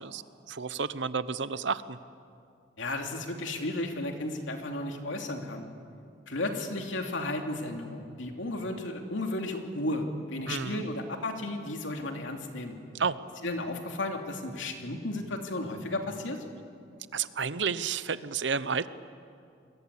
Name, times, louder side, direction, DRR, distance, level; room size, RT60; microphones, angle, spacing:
voice 1, 0.0-2.0 10.5-10.8 12.9-13.2 17.1-18.9, right 5 dB, 65° right, 15 dB, 0.8 m, -31 dB
voice 2, 2.8-5.7 6.3-12.8 13.4-16.4, left 2 dB, 80° left, 3 dB, 2.9 m, -34 dB
28.5 x 21.5 x 8.4 m, 2.5 s
head